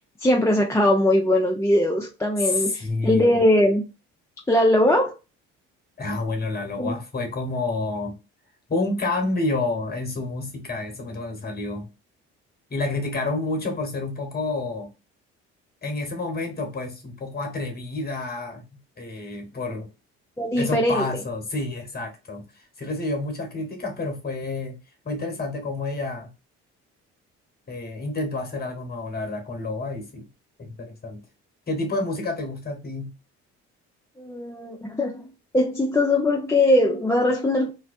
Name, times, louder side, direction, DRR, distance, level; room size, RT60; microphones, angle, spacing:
voice 1, 0.2-3.8 4.5-5.1 6.8-7.0 20.4-21.1 34.2-35.2 35.5-37.7, left 1 dB, 5° left, 0.4 m, -20 dB
voice 2, 2.4-3.4 6.0-8.2 8.7-11.9 12.7-14.9 15.8-18.6 19.0-19.9 20.6-24.8 25.0-26.3 27.7-30.3 30.6-31.2 31.7-33.1, left 2 dB, 25° left, 1.1 m, -29 dB
2.6 x 2.1 x 2.4 m
hypercardioid pair, 55°, 37 cm